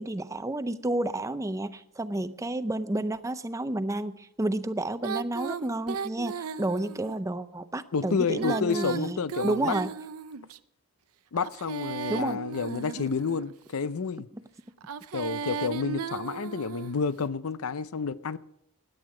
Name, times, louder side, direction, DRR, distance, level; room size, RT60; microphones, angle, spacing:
voice 1, 0.0-9.2 9.4-9.9 12.1-12.4, right 1 dB, 15° right, 0.5 m, -30 dB
Female singing, 5.0-7.2 8.3-10.6 11.4-13.5 14.8-17.0, right 5 dB, 80° right, 0.6 m, -36 dB
voice 2, 7.9-9.7 11.3-14.3 15.1-18.4, left 5 dB, 75° left, 0.6 m, -30 dB
17.0 x 11.0 x 4.9 m
head